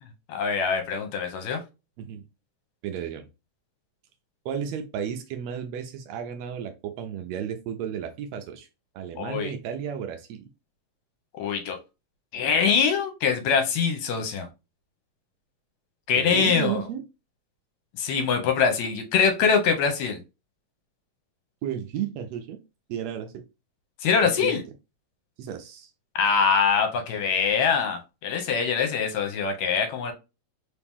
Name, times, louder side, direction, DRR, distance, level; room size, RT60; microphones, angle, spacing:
voice 1, 0.3-1.6 9.2-9.5 11.4-11.8 12.3-14.5 16.1-16.8 17.9-20.2 24.0-24.6 26.2-30.1, left 6 dB, 70° left, 5 dB, 2.1 m, -23 dB
voice 2, 2.8-3.3 4.4-8.7 8.9-10.4 16.2-17.0 21.6-22.6 22.9-23.4 24.2-24.6 25.4-25.9, right 9 dB, 75° right, 7 dB, 1.6 m, -33 dB
4.7 x 2.9 x 3.5 m, 0.27 s
omnidirectional pair, 3.5 m